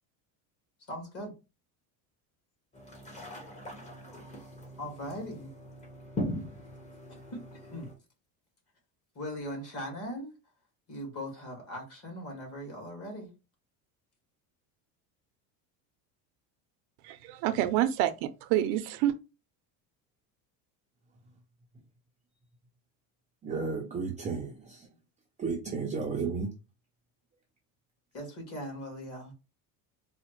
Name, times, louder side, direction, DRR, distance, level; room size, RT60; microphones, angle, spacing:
voice 1, 0.9-1.3 4.8-5.5 7.1-7.9 9.2-10.3 10.9-13.3 28.1-29.3, equal, 35° left, 1.7 m, -40 dB
sound 1, 2.7-7.9, left 1 dB, 15° left, 0.8 m, -40 dB
voice 2, 17.0-19.2, right 12 dB, 70° right, 0.5 m, -28 dB
voice 3, 23.4-24.9 25.4-26.5, right 5 dB, 20° right, 0.4 m, -33 dB
4.0 x 2.1 x 3.0 m
cardioid pair, 140°, 40 cm